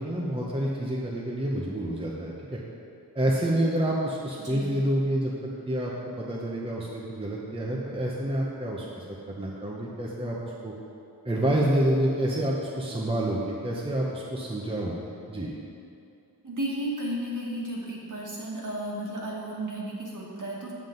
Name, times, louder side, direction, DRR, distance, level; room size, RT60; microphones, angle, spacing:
voice 1, 0.0-2.6 3.1-5.3 5.7-10.4 10.6-10.7 11.2-15.0 15.3-15.5, right 1 dB, 15° right, -3 dB, 0.8 m, -28 dB
voice 2, 4.4-4.7 16.4-20.7, right 1 dB, 50° right, -4 dB, 1.8 m, -33 dB
7.4 x 7.3 x 3.9 m, 2.7 s
wide cardioid pair, 90°, 40 cm